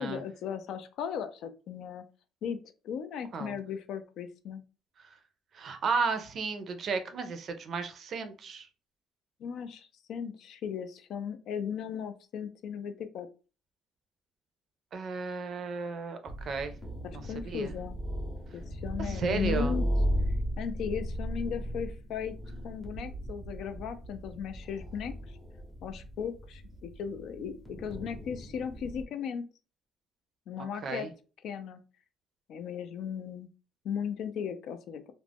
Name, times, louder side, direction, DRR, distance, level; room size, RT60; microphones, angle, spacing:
voice 1, 0.0-2.0 2.4-2.6 2.8-4.6 9.4-13.3 17.1-18.0 18.5-19.8 20.6-22.3 22.6-25.2 25.8-29.4 30.5-31.1 31.4-31.8 32.5-33.5 33.8-35.0, left 7 dB, 60° left, 9 dB, 0.4 m, -37 dB
voice 2, 5.5-8.7 14.9-16.7 17.1-17.7 19.0-19.8 30.8-31.1, right 4 dB, 45° right, 8 dB, 0.4 m, -34 dB
sound 1, 16.3-29.0, equal, 15° left, 0.7 m, -35 dB
2.4 x 2.0 x 3.3 m, 0.35 s
cardioid pair, 150°, 0 cm